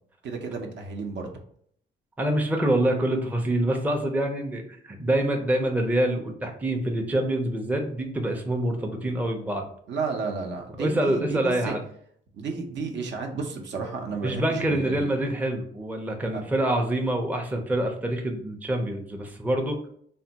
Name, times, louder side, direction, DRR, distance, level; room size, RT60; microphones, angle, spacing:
voice 1, 0.2-1.3 9.9-11.7 12.3-15.1 16.3-16.4, right 4 dB, 65° right, 3 dB, 0.6 m, -32 dB
voice 2, 2.2-9.6 10.8-11.8 14.2-19.8, right 1 dB, 10° right, 3 dB, 0.5 m, -26 dB
3.3 x 2.2 x 2.7 m, 0.63 s
cardioid pair, 90°, 20 cm